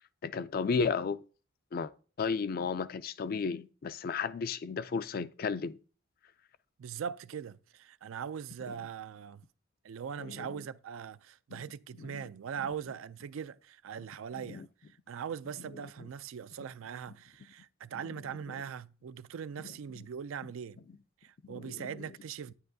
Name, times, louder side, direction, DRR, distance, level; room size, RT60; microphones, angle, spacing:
voice 1, 0.2-1.2 1.7-1.9 2.2-5.8 10.3-10.6 11.5-11.6 12.1-12.2 14.5-14.7 21.4-21.9, left 5 dB, 45° left, 0.3 m, -33 dB
voice 2, 6.8-9.4 9.8-20.8 21.2-22.5, right 7 dB, 80° right, 0.4 m, -41 dB
9.8 x 9.4 x 2.7 m
head